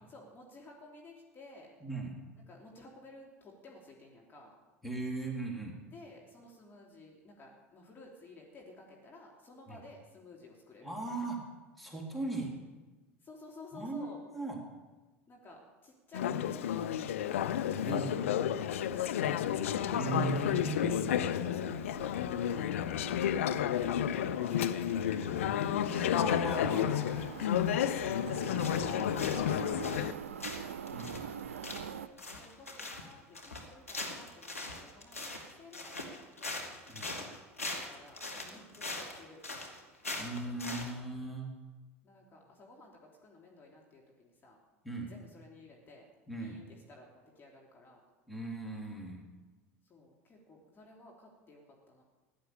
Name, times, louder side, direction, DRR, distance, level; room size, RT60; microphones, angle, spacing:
voice 1, 0.0-1.7 2.5-4.5 5.9-11.3 13.2-14.2 15.3-17.4 20.7-25.1 28.3-28.8 29.6-30.8 31.6-36.6 37.6-39.4 42.0-44.6 45.1-48.0 49.8-52.0, left 2 dB, 30° left, -1 dB, 3.1 m, -54 dB
voice 2, 1.8-2.2 4.8-5.8 9.7-9.8 10.8-11.5 11.8-12.6 13.7-14.6 17.8-18.2 19.9-21.0 25.8-27.7 30.9-31.2 36.9-37.2 40.2-41.5 44.8-45.1 46.3-46.6 48.3-49.3, right 3 dB, ahead, -1 dB, 3.7 m, -38 dB
Conversation / Chatter, 16.1-30.1, left 10 dB, 70° left, 0.6 m, -31 dB
sound 1, 17.2-32.1, right 8 dB, 75° right, 0.5 m, -46 dB
sound 2, 28.6-29.5 29.8-30.1 30.4-40.9, left 2 dB, 90° left, 2.0 m, -41 dB
16.0 x 11.5 x 6.9 m, 1.2 s
figure-of-eight pair, 75°, 7 cm